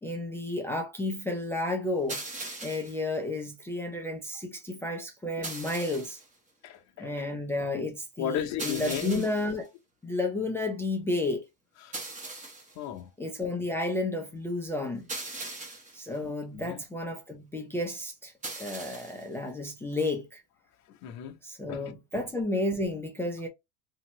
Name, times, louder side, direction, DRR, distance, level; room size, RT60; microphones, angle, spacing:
voice 1, 0.0-2.2 2.6-6.2 7.0-9.7 10.0-11.4 13.2-15.1 15.9-18.3 18.6-20.4 21.4-23.5, left 2 dB, 5° left, 0.3 m, -32 dB
sound 1, 2.1-3.0 5.4-6.3 8.6-9.5 11.9-12.8 15.1-16.0 18.4-19.3, right 2 dB, 15° right, 0.8 m, -39 dB
voice 2, 6.6-7.3 7.8-7.9 8.2-9.3 11.8-11.9 12.8-13.1 16.2-16.8 21.0-21.3 21.7-22.2, left 9 dB, 40° left, 0.7 m, -35 dB
2.8 x 2.7 x 2.9 m
supercardioid pair, 120°, 46 cm